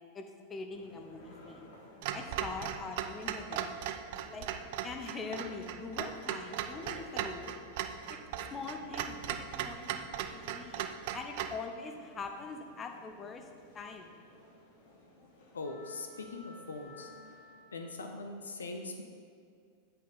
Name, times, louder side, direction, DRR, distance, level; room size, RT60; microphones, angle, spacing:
voice 1, 0.1-1.7 2.1-3.7 4.2-7.5 8.1-8.2 8.5-10.8 11.1-13.5 13.7-14.1, left 4 dB, 20° left, 4 dB, 0.8 m, -43 dB
sound 1, 0.8-17.9, left 1 dB, 50° left, 1.4 m, -56 dB
Clock, 2.0-11.6, right 10 dB, 50° right, 0.4 m, -38 dB
voice 2, 15.5-17.1 17.7-19.0, left 3 dB, 70° left, 4 dB, 0.7 m, -41 dB
7.7 x 5.5 x 4.1 m, 2.3 s
figure-of-eight pair, 90°, 0 cm